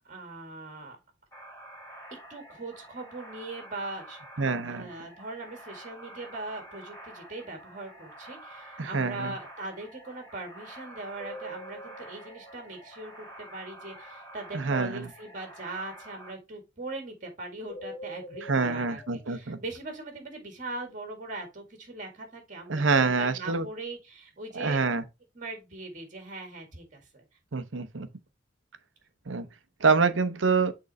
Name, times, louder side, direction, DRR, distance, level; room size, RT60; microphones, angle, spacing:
voice 1, 0.1-1.0 2.3-4.2 4.7-24.8 25.4-27.2, right 2 dB, 40° right, 1.9 m, -40 dB
sound 1, 1.3-16.3, right 1 dB, 15° left, 3.6 m, -48 dB
voice 2, 4.4-4.9 8.8-9.3 14.5-15.1 18.5-19.6 22.7-23.7 24.5-25.0 27.5-28.1 29.3-29.5 29.8-30.7, right 4 dB, 75° right, 0.8 m, -26 dB
sound 2, 11.2-13.6 17.7-19.3, equal, 40° left, 1.0 m, -44 dB
6.4 x 3.9 x 4.1 m
head